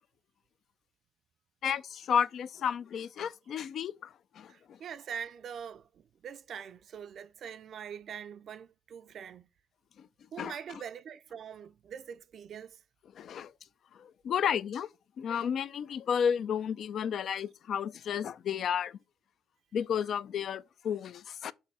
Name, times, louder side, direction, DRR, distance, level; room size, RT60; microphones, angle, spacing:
voice 1, 1.6-4.8 10.0-10.1 10.4-10.5 13.1-13.5 14.0-14.9 15.2-19.0 19.7-21.5, left 8 dB, 65° left, 0.3 m, -32 dB
voice 2, 4.5-9.5 10.3-12.8, right 8 dB, 60° right, 0.4 m, -43 dB
6.8 x 2.6 x 5.4 m
cardioid pair, 90°, 0 cm